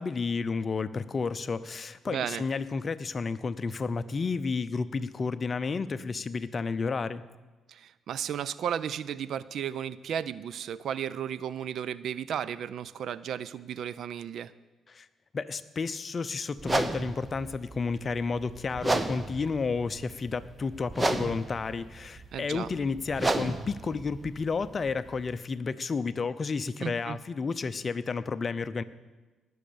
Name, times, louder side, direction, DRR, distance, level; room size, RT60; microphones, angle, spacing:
voice 1, 0.0-7.2 14.9-15.1 15.3-28.8, left 4 dB, 40° left, 14 dB, 0.6 m, -31 dB
voice 2, 2.1-2.4 7.7-14.5 22.3-22.7 26.8-27.2, right 9 dB, 70° right, 17 dB, 0.4 m, -34 dB
sound 1, 16.6-25.3, right 2 dB, 20° right, 0.9 m, -33 dB
19.0 x 6.4 x 7.0 m, 1.2 s
cardioid pair, 90°, 0 cm